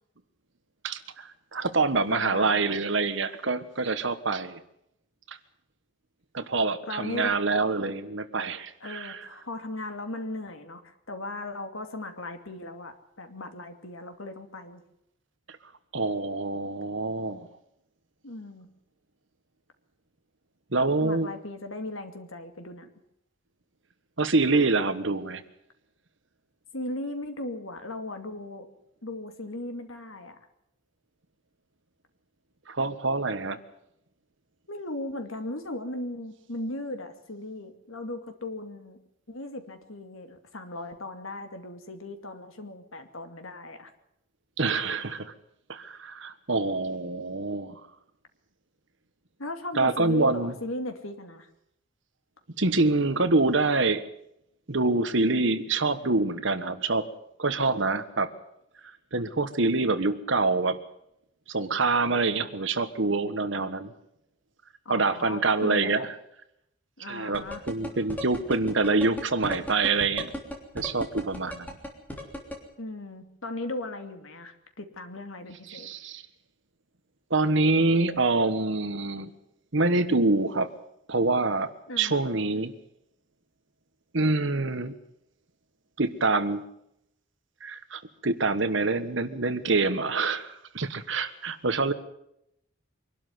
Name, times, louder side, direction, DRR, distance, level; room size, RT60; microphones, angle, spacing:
voice 1, 0.8-4.6 5.3-5.4 6.3-9.2 15.9-17.5 20.7-21.3 24.2-25.4 32.7-33.6 44.6-45.3 45.7-47.8 49.8-50.5 52.6-54.0 54.7-57.1 57.4-58.3 59.1-60.8 61.5-63.9 64.9-66.1 67.1-70.3 70.7-71.8 75.7-76.2 77.3-79.3 79.7-80.7 81.1-81.7 82.0-82.7 84.1-84.9 86.0-86.6 87.6-91.9, right 3 dB, 65° right, 12 dB, 1.3 m, -26 dB
voice 2, 2.1-2.7 6.9-7.3 8.8-10.8 11.1-14.8 18.2-18.7 21.0-22.9 26.7-28.7 29.0-30.4 34.7-39.0 39.3-43.9 49.4-51.5 64.8-66.1 67.0-67.7 72.8-75.9 81.9-82.1, left 2 dB, 75° left, 7 dB, 2.6 m, -37 dB
sound 1, 67.3-72.6, left 1 dB, 10° left, 3.3 m, -35 dB
24.0 x 12.0 x 9.5 m, 0.80 s
head